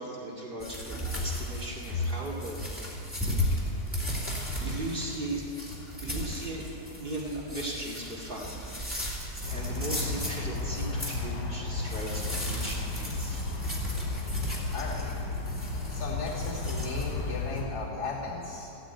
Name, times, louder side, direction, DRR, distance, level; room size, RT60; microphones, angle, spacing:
voice 1, 0.0-3.2 4.6-5.4 6.0-6.7 7.0-8.5 8.9-13.5, right 1 dB, 30° right, -3 dB, 2.3 m, -38 dB
sound 1, 0.6-17.6, equal, 5° right, 2.5 m, -36 dB
Aircraft, 9.4-17.7, left 3 dB, 75° left, 1.8 m, -34 dB
voice 2, 14.7-15.1 15.9-18.8, left 3 dB, 60° left, -7 dB, 3.4 m, -36 dB
14.5 x 8.5 x 9.2 m, 3.0 s
omnidirectional pair, 1.9 m